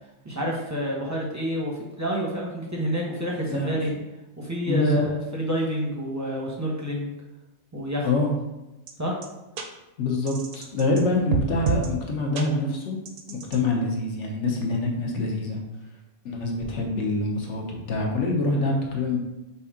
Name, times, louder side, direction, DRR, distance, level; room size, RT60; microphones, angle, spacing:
voice 1, 0.2-3.9 4.4-7.1 7.7-8.1 9.0-9.2, equal, 15° right, -2 dB, 0.7 m, -28 dB
voice 2, 4.7-5.1 8.0-8.3 10.0-13.0 13.3-15.6 16.2-19.2, left 2 dB, 65° left, 1 dB, 1.1 m, -25 dB
sound 1, 8.9-9.0 9.2-9.3 9.6-9.7 10.3-11.0 11.3-11.9 12.3-12.4 13.0-13.6, right 5 dB, 60° right, 0.7 m, -28 dB
5.3 x 2.8 x 3.5 m, 0.98 s
omnidirectional pair, 1.3 m